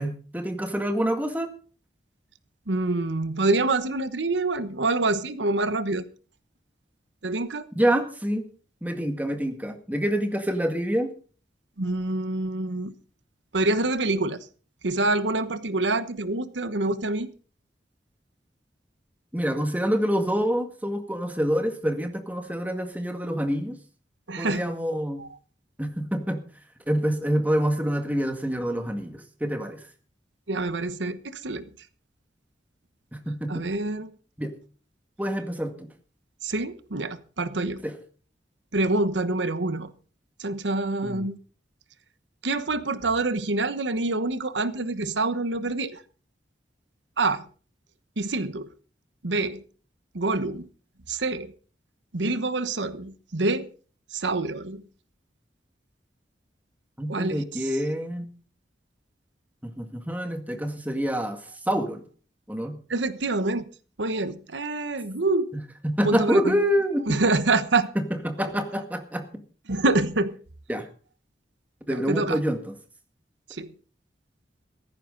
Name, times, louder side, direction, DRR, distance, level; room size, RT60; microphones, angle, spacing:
voice 1, 0.0-1.5 7.8-8.5 8.8-11.1 19.3-23.8 24.4-25.2 25.8-26.4 26.9-29.8 33.1-33.6 34.4-34.5 35.2-35.9 37.8-37.9 41.0-41.3 57.0-58.3 59.6-62.0 62.5-62.8 65.8-67.2 68.0-69.4 70.7-70.9 71.9-72.7, equal, 10° right, 6 dB, 1.9 m, -27 dB
voice 2, 2.7-6.1 7.2-7.7 11.8-12.9 13.5-14.5 14.8-17.3 24.3-24.6 25.2-25.3 30.5-31.7 33.5-34.1 36.4-37.9 38.7-39.9 40.4-41.4 42.4-46.0 47.2-47.4 48.2-48.7 49.2-49.6 50.1-50.7 51.1-51.5 52.1-53.7 54.1-54.8 57.1-57.8 62.9-63.7 64.0-65.5 66.0-66.6 67.1-67.9 69.7-70.4 71.9-72.4 73.5-73.7, right 2 dB, 90° right, 13 dB, 1.2 m, -26 dB
16.5 x 14.0 x 3.9 m, 0.40 s
head